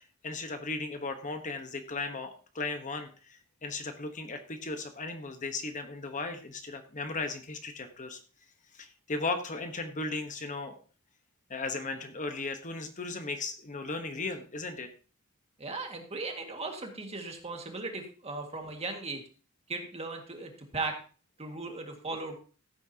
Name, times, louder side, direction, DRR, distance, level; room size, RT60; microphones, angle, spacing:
voice 1, 0.0-8.2 8.7-10.8 11.5-14.9, left 3 dB, 35° left, 7 dB, 1.1 m, -36 dB
voice 2, 15.6-19.2 19.7-21.0 21.4-22.3, right 3 dB, 30° right, 3 dB, 1.9 m, -37 dB
15.0 x 8.7 x 2.8 m, 0.38 s
head